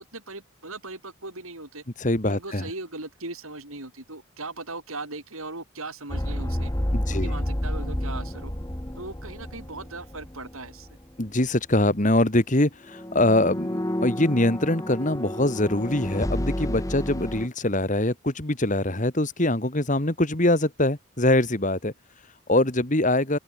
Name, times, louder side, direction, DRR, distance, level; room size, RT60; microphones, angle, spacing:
voice 1, 0.0-1.8 2.3-6.7 7.1-8.5 9.0-10.9, right 2 dB, 75° right, 7.8 m, -38 dB
voice 2, 2.0-2.7 6.9-7.3 11.2-23.4, left 1 dB, 35° left, 2.1 m, -23 dB
sound 1, 6.1-11.0 11.2-11.5 12.9-17.5, left 1 dB, 15° left, 1.4 m, -30 dB
open air
head